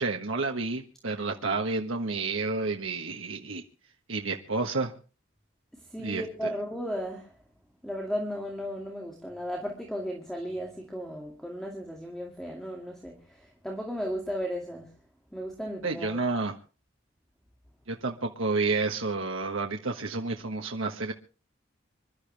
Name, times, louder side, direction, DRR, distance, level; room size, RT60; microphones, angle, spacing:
voice 1, 0.0-3.6 4.1-4.9 6.0-6.5 15.8-16.6 17.9-21.1, right 3 dB, 90° right, 1.4 m, -30 dB
voice 2, 5.9-7.3 7.8-14.9 15.3-16.2, equal, 5° left, 2.3 m, -35 dB
26.5 x 12.5 x 3.4 m
head